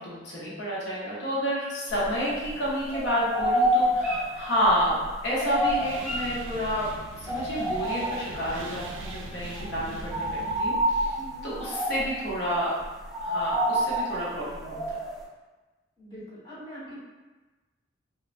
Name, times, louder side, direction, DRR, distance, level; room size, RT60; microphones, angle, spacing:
voice 1, 0.0-6.9 7.2-11.2 11.4-12.7 13.2-15.0, equal, 70° left, -7 dB, 0.8 m, -29 dB
sound 1, 1.9-2.6 2.9-6.8 7.2-8.6 8.9-9.2 9.4-15.2, equal, ahead, 0.3 m, -28 dB
sound 2, 5.6-10.6, right 3 dB, 85° right, 0.3 m, -42 dB
voice 2, 16.0-17.0, equal, 25° left, -11 dB, 1.2 m, -43 dB
3.2 x 2.1 x 2.4 m, 1.2 s
head